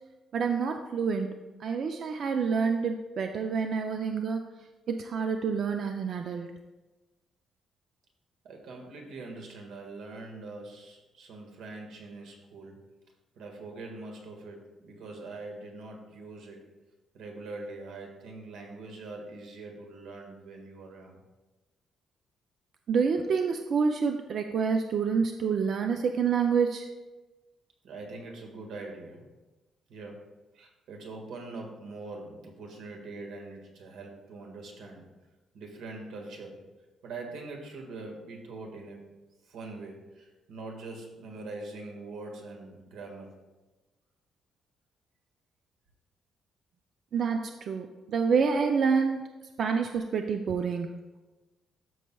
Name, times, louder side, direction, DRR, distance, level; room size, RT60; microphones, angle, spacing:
voice 1, 0.3-4.4 4.9-6.5 22.9-26.9 47.1-49.2 49.6-51.2, right 5 dB, 45° right, 5 dB, 0.4 m, -28 dB
voice 2, 8.4-12.8 13.3-16.6 17.1-21.2 27.8-29.3 29.9-35.0 35.5-36.6 37.0-39.0 39.4-43.3, right 3 dB, 85° right, 2 dB, 1.7 m, -43 dB
13.0 x 6.3 x 2.3 m, 1.2 s
cardioid pair, 175°, 0 cm